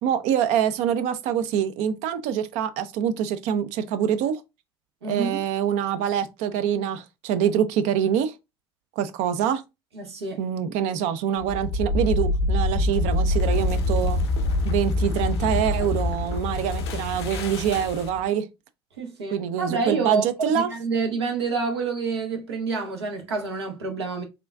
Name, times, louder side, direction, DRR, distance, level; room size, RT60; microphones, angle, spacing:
voice 1, 0.0-4.4 5.0-8.3 9.0-9.6 10.4-14.2 14.6-18.4 19.3-20.7, right 9 dB, 60° right, 0.5 m, -25 dB
voice 2, 5.0-5.4 9.9-10.4 19.0-24.2, right 4 dB, 85° right, 0.8 m, -28 dB
sound 1, 11.4-18.3, left 2 dB, 75° left, 0.6 m, -25 dB
3.6 x 2.4 x 2.2 m
hypercardioid pair, 65°, 14 cm